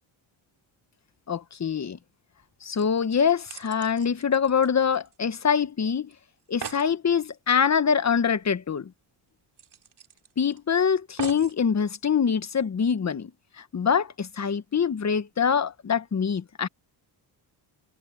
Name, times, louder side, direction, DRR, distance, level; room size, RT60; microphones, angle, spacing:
voice 1, 1.3-2.0 2.6-6.1 6.5-8.9 10.4-13.3 13.6-16.7, left 7 dB, 35° left, 1.3 m, -24 dB
sound 1, 2.4-2.5 2.8-5.4 5.7-5.8 6.1-6.2 6.4-6.9 8.4-8.5 8.9-9.0 9.6-10.6 11.2-11.6 12.3-12.4, right 8 dB, 55° right, 3.8 m, -42 dB
cardioid pair, 85°, 48 cm